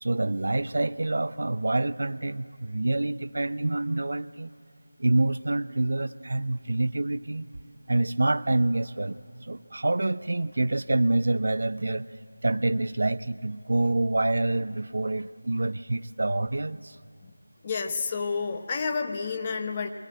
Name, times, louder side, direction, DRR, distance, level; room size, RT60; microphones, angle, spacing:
voice 1, 0.0-4.5 5.0-7.5 7.9-12.1 12.4-17.0, right 2 dB, 55° right, 15 dB, 0.5 m, -27 dB
voice 2, 17.6-19.9, left 5 dB, 20° left, 6 dB, 1.0 m, -30 dB
22.5 x 20.5 x 8.9 m, 2.5 s
figure-of-eight pair, 165°, 0 cm